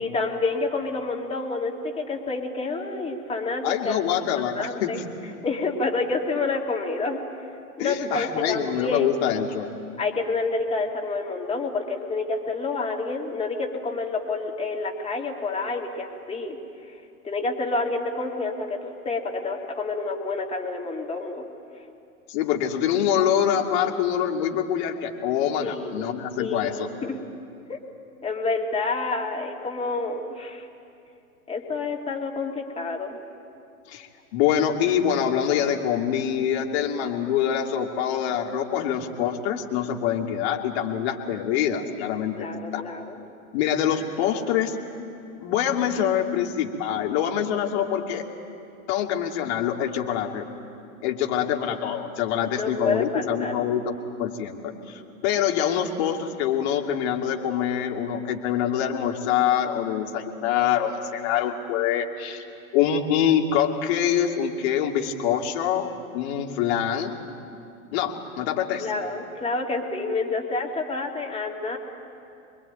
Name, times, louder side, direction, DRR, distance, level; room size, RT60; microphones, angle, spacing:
voice 1, 0.0-4.0 4.5-5.0 5.4-7.2 7.8-9.2 10.0-16.6 17.2-21.4 25.6-26.1 26.4-27.2 27.7-27.8 28.2-30.7 31.5-33.2 42.4-43.2 52.5-53.5 68.8-71.8, left 3 dB, 15° left, 0 dB, 3.2 m, -28 dB
voice 2, 3.6-4.9 7.8-9.7 22.3-26.9 33.9-42.8 43.5-44.8 45.4-48.2 48.9-50.4 51.0-53.9 54.2-62.4 62.7-65.9 66.1-67.1 67.9-68.9, left 9 dB, 50° left, 2 dB, 2.9 m, -25 dB
26.0 x 22.0 x 9.3 m, 2.6 s
hypercardioid pair, 105°, 41 cm